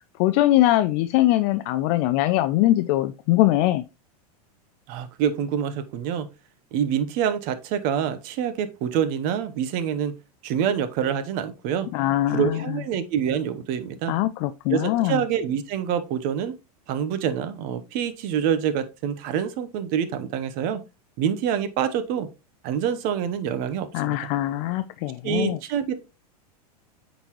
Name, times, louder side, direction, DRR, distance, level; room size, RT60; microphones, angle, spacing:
voice 1, 0.2-3.8 11.9-12.8 14.1-15.2 23.9-25.6, left 15 dB, 45° left, 0.4 m, -22 dB
voice 2, 4.9-6.3 6.7-10.1 10.4-11.9 12.3-14.1 14.7-16.6 16.9-20.8 21.2-22.3 22.6-24.3 25.2-26.0, right 8 dB, 45° right, 0.9 m, -26 dB
8.0 x 4.0 x 3.0 m
supercardioid pair, 125°, 20 cm